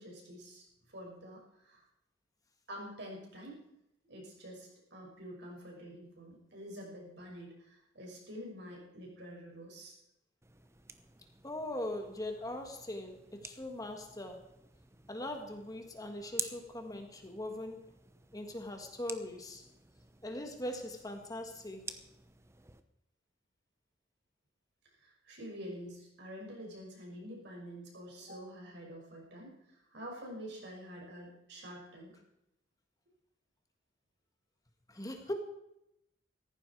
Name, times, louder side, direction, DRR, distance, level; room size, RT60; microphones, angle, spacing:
voice 1, 0.0-1.9 2.7-3.6 4.1-10.0 25.0-32.2, equal, 60° right, -1 dB, 6.2 m, -47 dB
sound 1, 10.4-22.8, right 4 dB, 15° right, 0.9 m, -50 dB
voice 2, 11.4-14.5 15.1-17.8 18.3-19.7 20.2-22.0 34.9-35.3, left 1 dB, 20° left, 5 dB, 1.6 m, -41 dB
16.5 x 14.5 x 4.6 m, 0.82 s
head